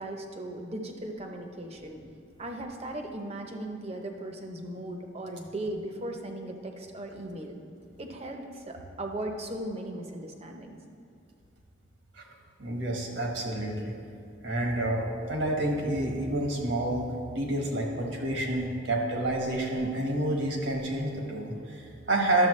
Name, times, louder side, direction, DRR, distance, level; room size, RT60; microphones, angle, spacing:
voice 1, 0.0-2.0 2.4-7.6 8.0-10.8, right 1 dB, 35° right, 3 dB, 0.7 m, -37 dB
voice 2, 12.6-13.9 14.4-17.1 17.3-22.5, right 1 dB, 75° right, 1 dB, 1.4 m, -29 dB
11.5 x 7.1 x 3.2 m, 2.5 s
head